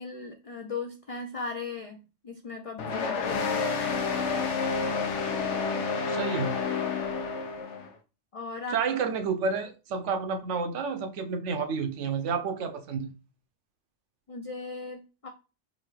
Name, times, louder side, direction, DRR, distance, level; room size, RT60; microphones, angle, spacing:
voice 1, 0.0-4.1 8.3-8.8 14.3-15.3, left 4 dB, 65° left, 0.3 m, -38 dB
sound 1, 2.8-7.9, left 4 dB, 80° left, 1.1 m, -29 dB
voice 2, 6.1-6.6 8.7-13.1, right 5 dB, 90° right, 1.0 m, -30 dB
5.3 x 2.5 x 3.1 m
omnidirectional pair, 1.2 m